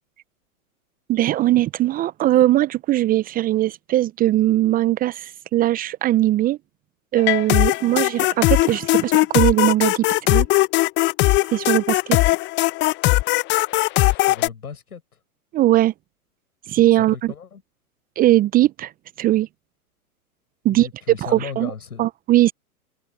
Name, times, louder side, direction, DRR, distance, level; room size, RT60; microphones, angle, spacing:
voice 1, 1.1-6.6 7.1-10.5 11.5-12.2 15.5-15.9 16.7-17.3 18.2-18.9 19.2-19.5 20.6-20.9 21.2-21.7 22.0-22.5, right 15 dB, 20° right, 0.8 m, -19 dB
sound 1, 7.2-14.5, left 19 dB, 25° left, 1.0 m, -19 dB
voice 2, 14.1-15.0 17.0-17.6 20.6-22.0, left 6 dB, 75° left, 8.0 m, -36 dB
figure-of-eight pair, 115°, 45 cm